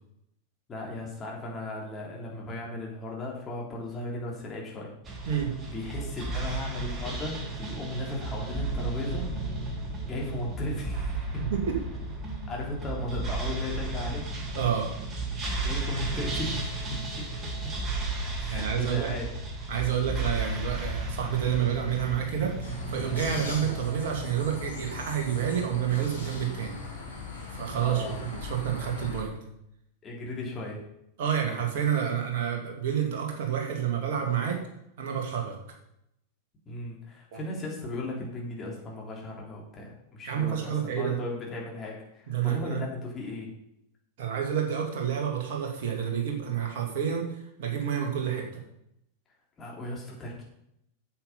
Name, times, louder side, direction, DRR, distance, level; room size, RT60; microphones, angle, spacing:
voice 1, 0.7-4.9 5.7-9.3 10.0-11.3 12.5-14.3 15.6-17.5 18.4-19.3 27.8-28.2 30.0-30.8 36.7-43.5 49.6-50.4, left 2 dB, 20° left, -2 dB, 3.5 m, -36 dB
sound 1, 5.0-24.3, right 2 dB, 25° right, 2.4 m, -34 dB
voice 2, 11.3-11.8 14.5-14.9 18.5-19.1 19.7-26.8 27.5-29.4 31.2-34.6 35.0-35.6 37.3-37.4 40.2-41.1 42.3-42.8 44.2-48.6, right 8 dB, 50° right, 1 dB, 2.6 m, -29 dB
sound 2, 22.6-29.2, left 4 dB, 70° left, 3.6 m, -39 dB
8.6 x 7.6 x 5.6 m, 0.78 s
figure-of-eight pair, 90°, 0 cm